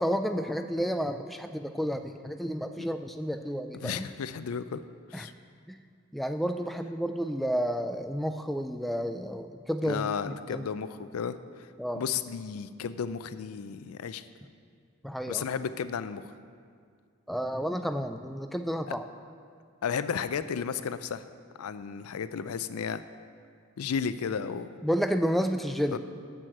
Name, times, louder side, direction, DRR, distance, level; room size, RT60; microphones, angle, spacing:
voice 1, 0.0-4.1 5.1-5.3 5.7-5.8 6.1-10.7 11.8-12.0 15.0-15.4 17.3-19.0 24.8-26.0, equal, ahead, 7 dB, 0.3 m, -31 dB
voice 2, 3.8-4.8 5.1-5.3 9.8-11.4 11.9-14.2 15.3-16.2 18.9-19.0 19.8-21.2 21.6-23.0 23.8-24.7 25.9-26.0, left 6 dB, 85° left, 13 dB, 0.4 m, -33 dB
7.8 x 6.3 x 7.6 m, 2.2 s
head